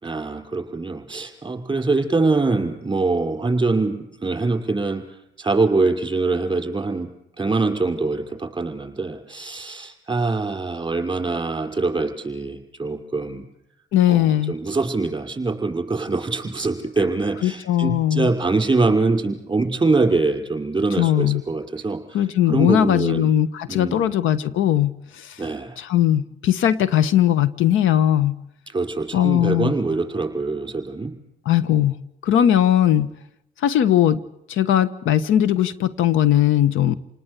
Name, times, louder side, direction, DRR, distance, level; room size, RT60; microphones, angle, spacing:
voice 1, 0.0-13.4 14.1-23.3 23.7-24.1 25.4-25.8 28.7-31.1, right 3 dB, 20° right, 3 dB, 5.8 m, -24 dB
voice 2, 13.9-14.5 17.4-18.3 21.0-21.4 22.1-25.4 25.8-28.4 29.1-29.7 31.4-31.9 32.2-33.1 33.6-34.2 34.5-36.9, left 11 dB, 85° left, 16 dB, 1.3 m, -19 dB
28.5 x 19.5 x 8.4 m, 0.81 s
cardioid pair, 90°, 20 cm